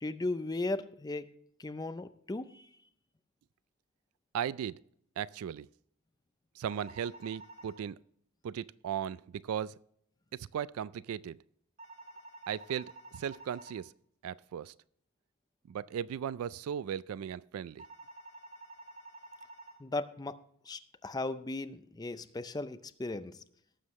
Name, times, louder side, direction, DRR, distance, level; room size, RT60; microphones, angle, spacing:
voice 1, 0.0-1.3 1.6-2.7 19.8-20.4 20.7-23.4, left 2 dB, 20° left, 0.5 m, -36 dB
voice 2, 4.3-4.8 5.2-5.7 6.5-8.0 8.4-9.8 10.3-11.4 12.5-13.9 14.2-14.7 15.7-17.9, right 9 dB, 80° right, 0.3 m, -37 dB
sound 1, 6.6-7.8 11.8-13.8 17.8-19.8, right 2 dB, 35° right, 2.0 m, -50 dB
18.0 x 7.5 x 3.1 m
head